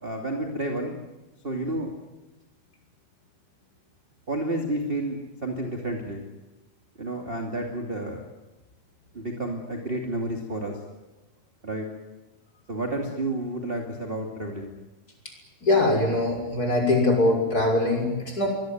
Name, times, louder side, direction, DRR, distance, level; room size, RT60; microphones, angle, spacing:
voice 1, 0.0-1.0 1.4-1.9 4.3-6.3 7.0-8.2 9.1-10.8 11.6-11.9 12.7-14.7, right 1 dB, 20° right, 2 dB, 2.0 m, -30 dB
voice 2, 15.6-18.5, left 2 dB, 20° left, 1 dB, 6.4 m, -22 dB
24.5 x 22.0 x 9.4 m, 1.1 s
omnidirectional pair, 4.5 m